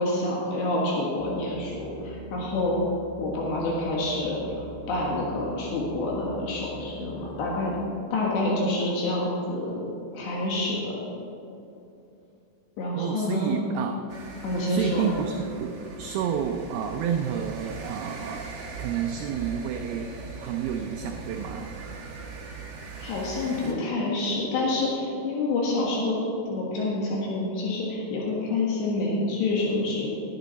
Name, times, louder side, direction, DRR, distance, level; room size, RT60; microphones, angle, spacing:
voice 1, 0.0-2.8 3.2-7.7 8.1-9.7 10.1-11.0 12.8-13.6 14.4-15.1 23.0-26.2 26.5-30.1, left 2 dB, 75° left, -3 dB, 3.9 m, -27 dB
sound 1, 1.2-7.9, left 1 dB, 60° left, 3.2 m, -44 dB
voice 2, 13.0-14.0 14.7-15.7 16.0-18.5 18.8-21.8, right 8 dB, 85° right, 4 dB, 2.1 m, -30 dB
sound 2, 14.1-23.7, right 4 dB, 45° right, 2.2 m, -40 dB
19.5 x 11.0 x 4.1 m, 2.7 s
omnidirectional pair, 5.1 m